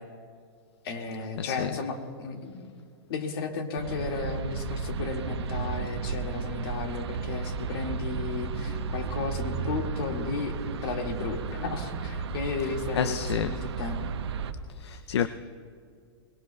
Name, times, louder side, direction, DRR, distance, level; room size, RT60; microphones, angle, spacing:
voice 1, 0.8-2.7 3.1-10.6 10.8-14.0, left 4 dB, 60° left, 2.0 m, -34 dB
voice 2, 1.4-1.8 12.9-13.6 14.8-15.3, left 9 dB, 80° left, 0.5 m, -29 dB
sound 1, 3.8-14.5, right 5 dB, 80° right, 0.9 m, -33 dB
22.0 x 20.5 x 2.3 m
hypercardioid pair, 125°, 14 cm